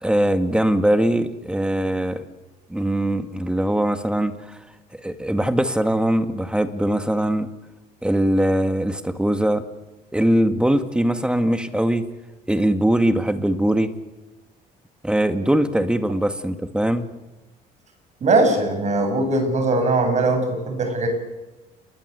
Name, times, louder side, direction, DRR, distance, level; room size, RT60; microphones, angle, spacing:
voice 1, 0.0-2.2 2.7-4.6 4.9-7.5 8.0-9.6 10.1-12.0 12.5-13.9 15.0-17.1, right 1 dB, 5° right, 9 dB, 2.1 m, -21 dB
voice 2, 18.2-21.1, right 2 dB, 45° right, 6 dB, 7.8 m, -20 dB
29.5 x 21.5 x 8.3 m, 1.1 s
cardioid pair, 110°, 17 cm